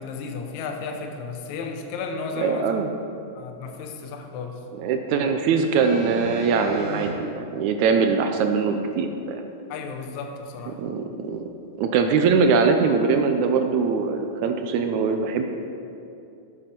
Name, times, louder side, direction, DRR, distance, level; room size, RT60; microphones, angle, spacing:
voice 1, 0.0-2.7 3.3-4.6 9.7-10.8, left 4 dB, 75° left, 4 dB, 2.0 m, -33 dB
voice 2, 2.4-2.9 4.7-9.4 10.8-11.5 11.8-15.4, right 5 dB, 75° right, 6 dB, 1.8 m, -22 dB
sound 1, 5.8-7.1 8.1-8.2, right 1 dB, 60° right, 3.8 m, -35 dB
9.5 x 7.6 x 5.9 m, 2.6 s
omnidirectional pair, 3.7 m